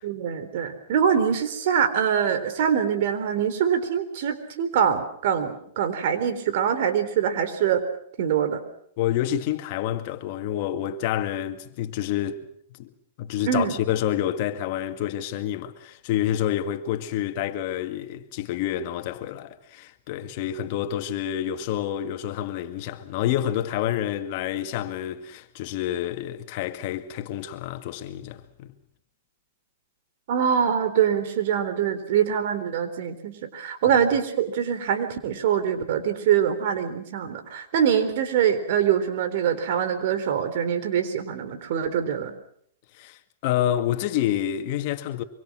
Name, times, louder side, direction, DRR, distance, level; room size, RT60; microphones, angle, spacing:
voice 1, 0.0-7.8 8.2-8.6 13.5-13.7 30.3-42.4, right 8 dB, 60° right, 3.8 m, -24 dB
voice 2, 9.0-12.5 12.8-12.9 13.2-28.7 43.0-45.2, left 11 dB, 50° left, 2.2 m, -28 dB
25.0 x 24.5 x 6.3 m
hypercardioid pair, 135°, 0 cm